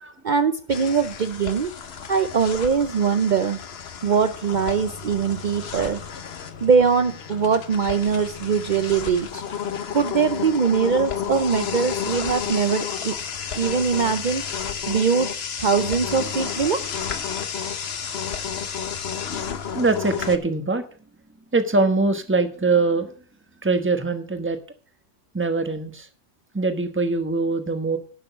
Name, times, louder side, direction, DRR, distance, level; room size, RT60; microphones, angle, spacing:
voice 1, 0.2-1.7 2.1-3.6 4.0-6.0 6.6-9.4 9.9-13.2 13.6-14.4 14.9-15.3 15.6-16.8, right 6 dB, 70° right, 9 dB, 0.4 m, -22 dB
sound 1, 0.7-20.4, left 7 dB, 45° left, 1.0 m, -31 dB
voice 2, 19.7-20.9 21.5-23.1 23.6-24.6 25.3-26.1 26.5-28.0, right 3 dB, 10° right, 8 dB, 1.0 m, -22 dB
11.5 x 6.2 x 6.9 m, 0.41 s
omnidirectional pair, 1.6 m